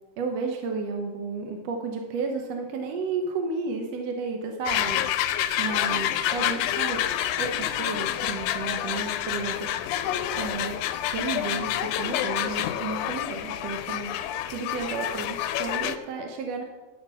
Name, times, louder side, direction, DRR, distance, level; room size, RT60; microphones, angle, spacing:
voice 1, 0.2-7.0 7.4-9.7 10.3-10.8 11.1-14.1 14.5-16.6, right 4 dB, 65° right, 3 dB, 1.8 m, -32 dB
sound 1, 4.7-16.0, left 12 dB, 85° left, 2.1 m, -28 dB
12.5 x 6.7 x 5.5 m, 1.3 s
omnidirectional pair, 3.6 m